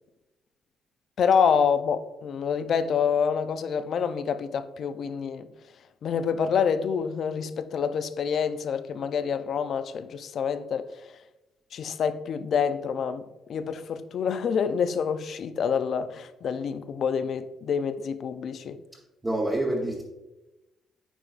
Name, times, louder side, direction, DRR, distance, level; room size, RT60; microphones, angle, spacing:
voice 1, 1.2-5.5 6.0-10.9 11.7-18.8, left 6 dB, 55° left, 0.4 m, -27 dB
voice 2, 19.2-20.0, right 1 dB, 15° right, 0.9 m, -26 dB
8.9 x 4.7 x 2.4 m
cardioid pair, 120°, 0 cm